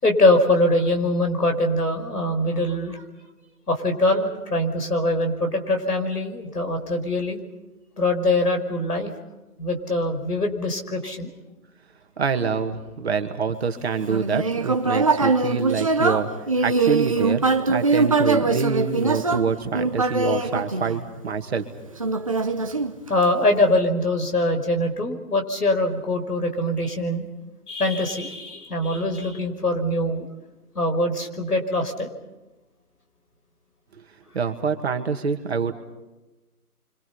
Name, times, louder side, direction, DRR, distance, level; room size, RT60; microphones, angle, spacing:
voice 1, 0.0-3.0 3.7-7.4 8.0-9.1 9.6-11.3 23.1-27.2 27.7-30.3 30.8-32.1, left 1 dB, 85° left, 4 dB, 5.5 m, -23 dB
voice 2, 12.2-16.3 16.6-21.6 34.3-35.7, right 5 dB, 45° right, 6 dB, 2.3 m, -26 dB
Human voice, 14.0-21.4 22.0-23.4, right 3 dB, 25° right, 0.8 m, -22 dB
29.5 x 25.5 x 5.7 m, 1.1 s
figure-of-eight pair, 160°, 45 cm